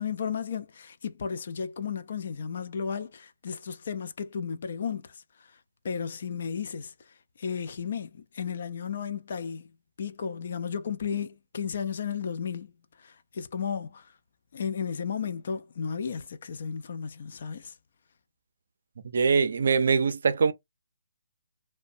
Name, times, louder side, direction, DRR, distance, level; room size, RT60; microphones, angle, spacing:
voice 1, 0.0-5.1 5.8-6.9 7.4-9.7 10.0-12.7 13.0-14.1 14.5-17.7, left 7 dB, 50° left, 0.4 m, -34 dB
voice 2, 19.1-20.5, right 5 dB, 60° right, 0.4 m, -23 dB
2.6 x 2.1 x 2.5 m
hypercardioid pair, 160°, 0 cm